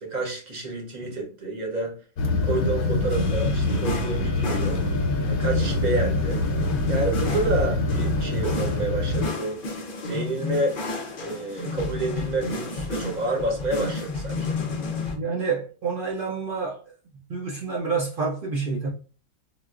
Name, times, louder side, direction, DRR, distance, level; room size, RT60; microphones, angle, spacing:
voice 1, 0.0-1.9 2.4-4.8 5.3-6.4 6.9-9.6 10.1-10.8 11.2-14.6, right 2 dB, 40° right, 0.8 m, -29 dB
sound 1, 2.2-9.3, left 2 dB, 90° left, 1.1 m, -25 dB
sound 2, 3.1-15.2, left 3 dB, 55° left, 0.6 m, -32 dB
voice 2, 15.1-16.8 17.3-18.9, right 5 dB, 75° right, 0.4 m, -28 dB
3.7 x 2.2 x 2.3 m
omnidirectional pair, 1.5 m